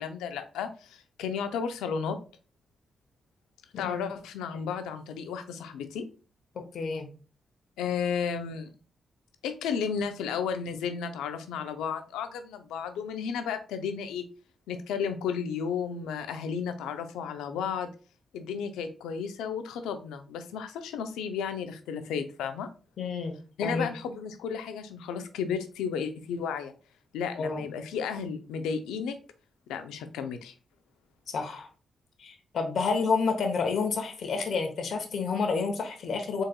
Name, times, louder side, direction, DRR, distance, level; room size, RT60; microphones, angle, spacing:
voice 1, 0.0-2.2 3.8-6.1 7.8-8.7 9.4-14.2 14.7-17.9 18.3-22.7 23.6-26.7 27.1-29.2 29.7-30.5, left 6 dB, 85° left, 9 dB, 0.5 m, -33 dB
voice 2, 6.5-7.1 23.0-23.3 23.6-23.9 27.4-27.7 31.3-31.7 32.2-36.4, left 4 dB, 65° left, 5 dB, 0.9 m, -29 dB
3.9 x 3.8 x 2.2 m, 0.36 s
hypercardioid pair, 45°, 0 cm